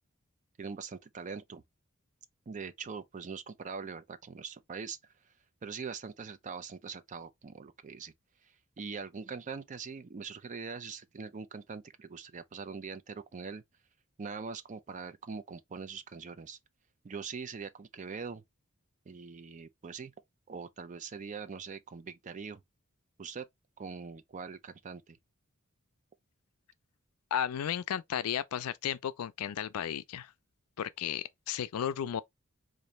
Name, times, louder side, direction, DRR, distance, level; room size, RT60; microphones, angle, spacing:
voice 1, 0.6-1.6 2.5-5.0 5.6-8.1 8.8-13.6 14.2-16.6 17.0-18.4 19.1-20.1 20.5-22.6 23.2-23.5 23.8-25.2, right 5 dB, 35° right, 0.4 m, -42 dB
voice 2, 27.3-30.3 30.8-32.2, left 9 dB, 90° left, 0.4 m, -34 dB
3.9 x 2.5 x 3.1 m
head